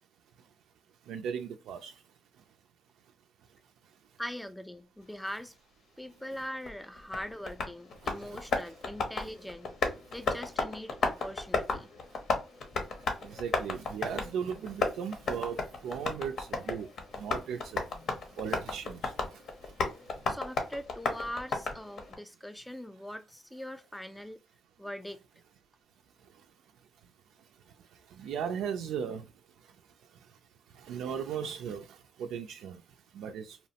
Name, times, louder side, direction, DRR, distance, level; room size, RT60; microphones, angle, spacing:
voice 1, 1.0-2.0 2.4-2.5 3.5-3.6 3.8-4.0 8.0-8.5 9.2-9.3 10.0-10.1 13.0-20.0 26.2-26.5 27.4-30.4 30.7-33.6, right 7 dB, 80° right, 0.3 m, -39 dB
voice 2, 4.2-5.5 6.0-9.7 10.1-11.9 20.3-24.4 24.8-25.2, left 1 dB, 5° left, 0.3 m, -41 dB
Tap, 6.7-22.2, left 3 dB, 65° left, 0.7 m, -34 dB
2.8 x 2.0 x 2.7 m
cardioid pair, 90°, 0 cm